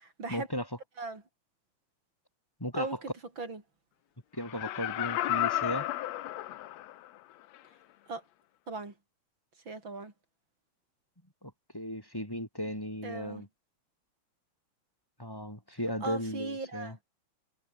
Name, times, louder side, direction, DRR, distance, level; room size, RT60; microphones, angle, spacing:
voice 1, 0.3-0.7 2.6-2.9 4.3-5.9 11.4-13.5 15.2-17.0, equal, 5° left, 5.4 m, -36 dB
voice 2, 2.8-3.6 8.1-8.2 8.7-8.9 9.7-10.1 13.0-13.4 16.0-17.0, right 3 dB, 40° right, 5.4 m, -38 dB
Laughter, 4.4-7.1 7.5-7.6, left 14 dB, 70° left, 2.0 m, -32 dB
omnidirectional pair, 3.3 m